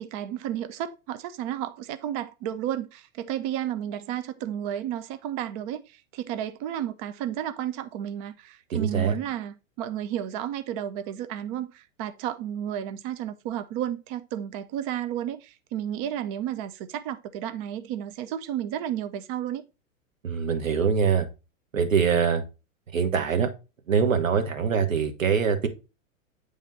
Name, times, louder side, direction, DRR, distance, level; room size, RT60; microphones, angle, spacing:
voice 1, 0.0-19.6, right 11 dB, 30° right, 0.4 m, -32 dB
voice 2, 8.7-9.2 20.2-21.3 21.7-22.4 22.9-23.5 23.9-25.7, right 6 dB, 75° right, 1.3 m, -23 dB
8.9 x 3.5 x 4.1 m
figure-of-eight pair, 95°, 40 cm